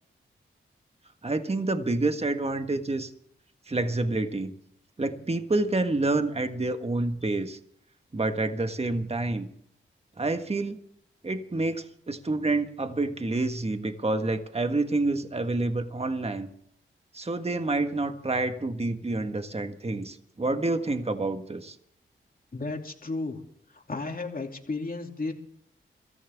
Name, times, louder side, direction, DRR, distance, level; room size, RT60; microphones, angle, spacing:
voice 1, 1.2-3.1 3.7-4.5 5.0-7.6 8.1-9.5 10.2-10.8 11.2-16.5 17.1-21.8, right 2 dB, 30° right, 7 dB, 1.6 m, -28 dB
voice 2, 22.5-23.4 23.7-25.3, left 3 dB, 45° left, 3 dB, 2.9 m, -33 dB
24.5 x 14.0 x 3.6 m, 0.67 s
cardioid pair, 55°, 21 cm